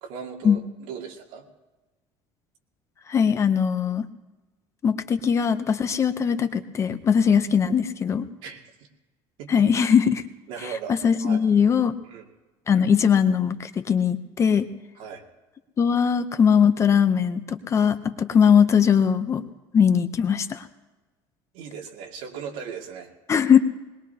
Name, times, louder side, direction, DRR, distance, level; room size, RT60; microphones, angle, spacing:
voice 1, 0.0-1.5 8.4-8.9 9.4-9.7 10.5-11.4 12.0-12.3 14.9-15.2 21.5-23.1, right 6 dB, 85° right, 1 dB, 2.3 m, -38 dB
voice 2, 3.1-4.1 4.8-8.3 9.5-10.2 11.0-11.9 12.7-14.7 15.8-19.4 19.7-20.7 23.3-23.6, left 7 dB, 25° left, 10 dB, 0.6 m, -20 dB
21.0 x 21.0 x 2.8 m, 1.2 s
cardioid pair, 170°, 12 cm